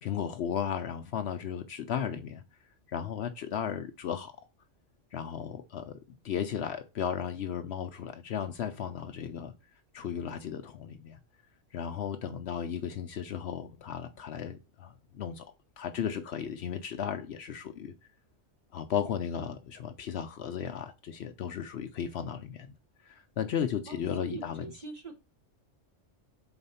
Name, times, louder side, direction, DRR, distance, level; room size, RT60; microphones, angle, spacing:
voice 1, 0.0-2.4 2.9-4.3 5.1-6.0 6.2-9.5 9.9-11.2 11.7-15.4 15.8-17.9 18.7-22.7 23.1-24.6, left 8 dB, 65° left, 0.8 m, -35 dB
voice 2, 23.9-25.2, right 4 dB, 35° right, 1.2 m, -43 dB
4.4 x 4.0 x 5.5 m
omnidirectional pair, 1.3 m